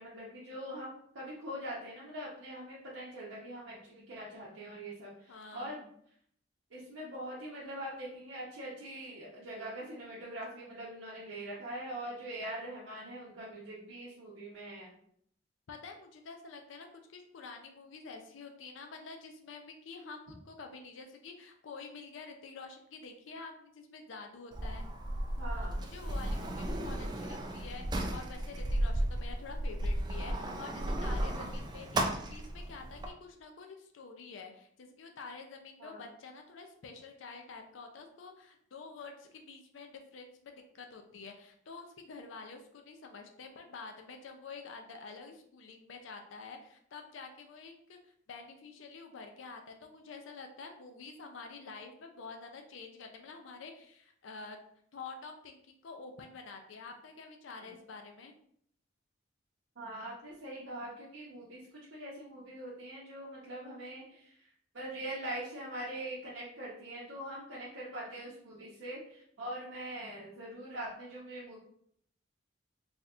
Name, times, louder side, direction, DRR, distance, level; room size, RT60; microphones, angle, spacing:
voice 1, 0.0-5.9 6.7-14.9 25.4-25.8 35.8-36.1 57.6-57.7 59.8-64.5 64.7-71.6, right 1 dB, 90° right, -6 dB, 0.9 m, -43 dB
voice 2, 5.3-5.8 15.7-24.9 25.6-54.6 54.9-58.3, left 4 dB, 80° left, 4 dB, 0.5 m, -48 dB
Sliding door, 24.5-33.1, right 1 dB, 20° right, 0.3 m, -34 dB
4.0 x 2.8 x 2.4 m, 0.66 s
head